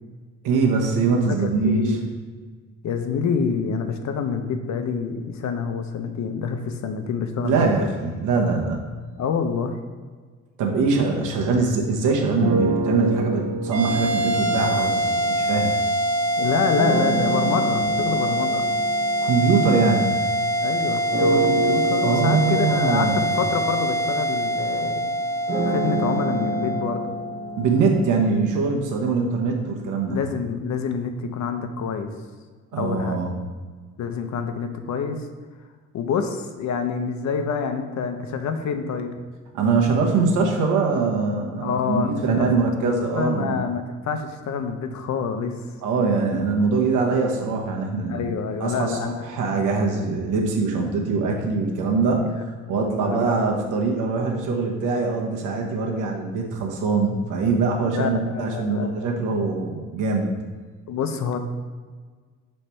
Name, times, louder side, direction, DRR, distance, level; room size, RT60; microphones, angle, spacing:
voice 1, 0.4-2.0 7.4-8.8 10.6-15.7 19.2-20.1 22.0-23.2 27.6-30.2 32.7-33.3 39.5-43.5 45.8-48.3 48.6-52.3 52.7-60.3, right 4 dB, 90° right, 0 dB, 1.0 m, -22 dB
voice 2, 1.3-2.1 2.8-7.9 9.2-9.7 16.4-18.7 20.6-25.1 25.6-27.1 30.1-32.1 32.7-33.2 34.0-35.3 35.9-39.1 41.6-42.7 43.1-45.6 48.1-49.3 52.2-52.4 52.8-53.6 58.0-58.9 60.9-61.4, left 6 dB, 65° left, 6 dB, 0.7 m, -27 dB
sound 1, 12.4-15.9 16.7-20.5 21.1-29.1, right 2 dB, 35° right, 1.0 m, -28 dB
sound 2, 13.7-28.3, equal, 60° right, 0.7 m, -25 dB
8.1 x 3.3 x 4.3 m, 1.5 s
cardioid pair, 90°, 30 cm